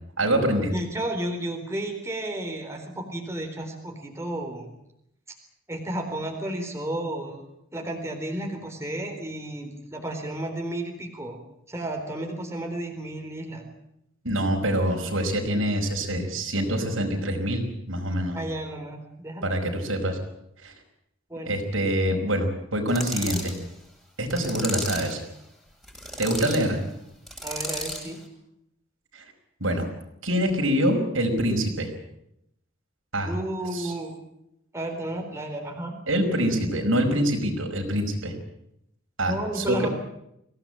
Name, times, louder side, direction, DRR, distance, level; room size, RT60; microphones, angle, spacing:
voice 1, 0.2-0.7 14.2-18.4 19.4-20.2 20.6-20.7 21.5-23.5 24.2-25.2 26.2-26.8 29.1-29.2 29.6-29.9 30.2-31.9 33.1-33.3 33.7-33.9 36.1-38.3 39.2-39.9, right 1 dB, 80° right, 3 dB, 5.3 m, -25 dB
voice 2, 0.7-4.7 5.7-7.4 7.7-11.4 11.7-13.7 18.3-19.6 21.3-21.6 27.4-28.2 33.3-34.1 34.7-36.0 39.3-39.9, right 1 dB, 15° right, 2 dB, 4.1 m, -32 dB
sound 1, 22.9-23.6 24.3-25.2 25.8-26.6 27.3-28.1, left 1 dB, ahead, 8.0 m, -33 dB
24.0 x 17.5 x 8.9 m, 0.80 s
head